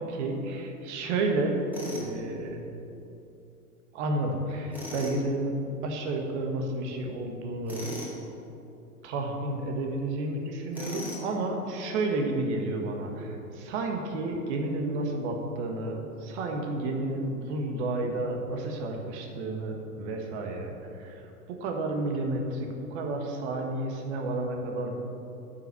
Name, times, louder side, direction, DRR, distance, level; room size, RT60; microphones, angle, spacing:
voice 1, 0.0-1.6 1.9-2.6 3.9-8.0 9.0-21.2 21.5-25.0, right 2 dB, 45° right, 3 dB, 1.7 m, -31 dB
Tools, 1.7-2.1 4.7-5.2 7.7-8.2 10.7-11.3, left 1 dB, 5° right, 2.1 m, -37 dB
9.4 x 5.9 x 7.1 m, 2.9 s
figure-of-eight pair, 105°, 47 cm